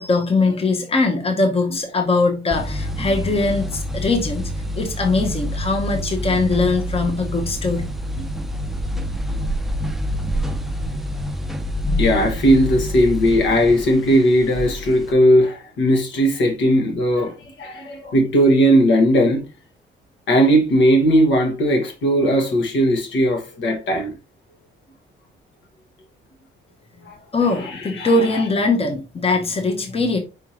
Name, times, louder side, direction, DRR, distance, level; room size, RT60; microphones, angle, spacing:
voice 1, 0.0-4.5 4.8-7.9 27.3-30.2, left 3 dB, 30° left, 1.0 m, -21 dB
sound 1, 2.5-15.1, equal, ahead, 0.5 m, -27 dB
voice 2, 12.0-19.5 20.3-24.1 27.1-27.2 27.6-27.7 28.0-28.4, equal, 70° left, 1.4 m, -17 dB
4.9 x 3.5 x 2.9 m
cardioid pair, 90°, 20 cm